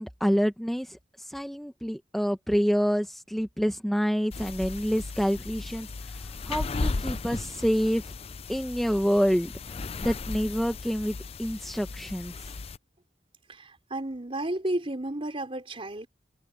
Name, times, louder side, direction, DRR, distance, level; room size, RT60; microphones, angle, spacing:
voice 1, 0.0-8.0 8.5-9.5 10.0-12.3, equal, ahead, 1.0 m, -27 dB
sound 1, 4.3-12.8, left 3 dB, 35° left, 0.5 m, -36 dB
voice 2, 13.5-16.1, right 1 dB, 35° right, 3.9 m, -32 dB
head